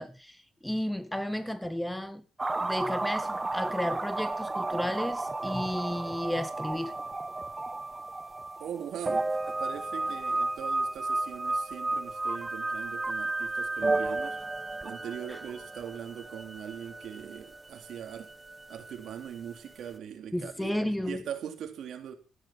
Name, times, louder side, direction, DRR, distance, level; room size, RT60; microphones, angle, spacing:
voice 1, 0.0-2.2 2.6-6.9 15.3-15.4 20.3-21.2, left 1 dB, 5° left, 1.4 m, -33 dB
sound 1, 2.4-19.6 19.9-20.0, right 2 dB, 20° right, 0.7 m, -33 dB
voice 2, 8.6-14.4 14.8-18.3 18.7-20.8 21.1-22.1, right 9 dB, 70° right, 3.6 m, -41 dB
15.0 x 10.5 x 6.0 m
cardioid pair, 90°, 0 cm